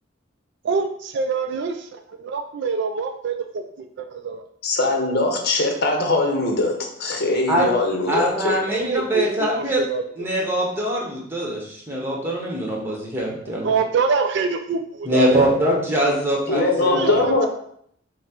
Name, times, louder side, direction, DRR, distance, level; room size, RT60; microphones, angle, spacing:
voice 1, 0.6-4.5 8.7-10.0 13.5-15.5 16.8-17.5, right 5 dB, 65° right, 6 dB, 0.3 m, -25 dB
voice 2, 4.6-6.7 7.0-8.6 16.5-17.5, left 2 dB, 55° left, 2 dB, 0.9 m, -21 dB
voice 3, 8.1-9.8 10.2-13.7 15.0-17.1, right 1 dB, 10° right, -3 dB, 1.0 m, -23 dB
5.7 x 2.1 x 4.4 m, 0.68 s
head